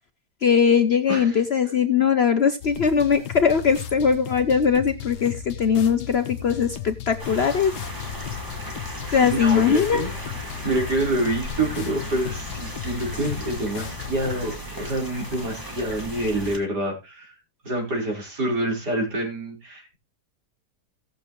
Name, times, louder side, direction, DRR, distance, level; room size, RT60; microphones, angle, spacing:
voice 1, 0.4-7.7 9.1-10.0, left 7 dB, 55° left, 9 dB, 0.7 m, -20 dB
voice 2, 1.1-1.4 9.1-10.1 10.6-17.4 17.6-19.9, right 1 dB, 80° right, -1 dB, 5.0 m, -27 dB
sound 1, 2.6-14.4, left 10 dB, 85° left, 1.4 m, -36 dB
sound 2, 7.2-16.6, equal, 10° right, 2.1 m, -36 dB
17.5 x 7.1 x 3.1 m, 0.26 s
omnidirectional pair, 1.7 m